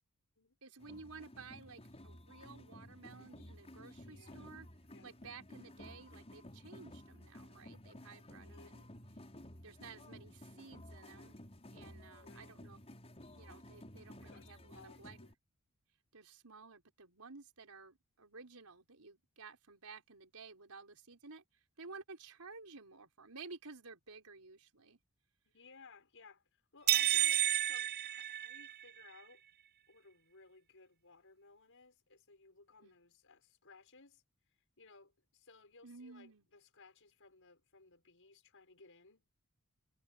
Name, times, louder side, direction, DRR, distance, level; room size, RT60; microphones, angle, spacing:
voice 1, 0.6-4.7 5.0-8.9 9.6-11.4 11.7-12.8 13.3-15.2 16.1-21.4 21.8-25.0 32.8-32.9 35.8-36.4, right 4 dB, 80° right, 4.7 m, -54 dB
sound 1, 0.8-15.3, left 1 dB, 30° left, 6.0 m, -54 dB
voice 2, 4.0-4.5 4.9-5.1 8.4-8.7 12.2-12.5 14.2-15.3 25.4-29.4 29.9-34.2 34.8-39.3, left 4 dB, 60° left, 6.8 m, -61 dB
sound 2, 26.9-29.0, right 14 dB, 45° right, 0.7 m, -31 dB
head